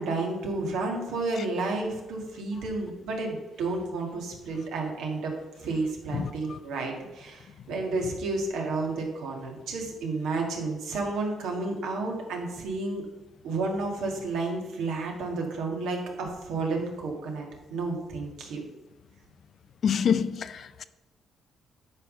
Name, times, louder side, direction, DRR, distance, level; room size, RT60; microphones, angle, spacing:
voice 1, 0.0-5.3 5.6-13.0 13.4-18.6, right 3 dB, 85° right, 1.9 m, -31 dB
voice 2, 6.1-6.6 19.8-20.8, left 7 dB, 55° left, 0.4 m, -27 dB
9.5 x 3.5 x 6.3 m
cardioid pair, 90°, 0 cm